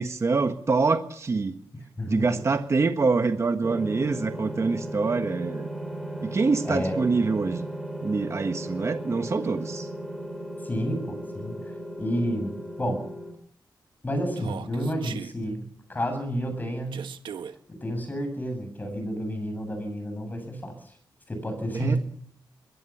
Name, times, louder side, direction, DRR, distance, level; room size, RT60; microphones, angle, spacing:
voice 1, 0.0-1.5 2.1-5.7 6.2-7.7 8.0-9.9 21.7-22.0, right 4 dB, 35° right, 8 dB, 1.5 m, -25 dB
voice 2, 2.0-2.4 6.6-7.0 10.6-13.0 14.0-17.0 17.7-20.9 21.3-22.0, equal, 20° left, 7 dB, 7.7 m, -30 dB
sound 1, 3.6-13.3, right 1 dB, ahead, 4.5 m, -36 dB
Human voice, 14.4-15.3 16.9-17.5, right 7 dB, 85° right, 1.4 m, -38 dB
21.5 x 16.5 x 7.4 m, 0.62 s
wide cardioid pair, 125°, 8 cm